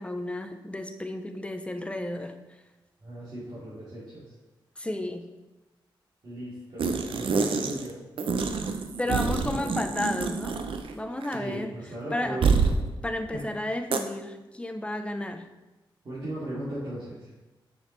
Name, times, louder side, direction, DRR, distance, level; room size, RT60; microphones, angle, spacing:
voice 1, 0.0-2.4 4.8-5.3 9.0-10.6 11.0-11.7 12.1-12.4 13.0-15.5, left 1 dB, 15° left, 6 dB, 0.6 m, -32 dB
voice 2, 3.0-4.3 6.2-8.0 9.1-10.0 11.3-12.9 13.3-13.5 16.0-17.3, right 1 dB, 60° right, -11 dB, 2.3 m, -37 dB
sound 1, 6.8-7.9 8.2-11.0 11.2-11.4 12.4-12.8 13.9-14.0, right 5 dB, 85° right, 0.5 m, -27 dB
6.9 x 6.1 x 3.2 m, 1.1 s
wide cardioid pair, 95°, 9 cm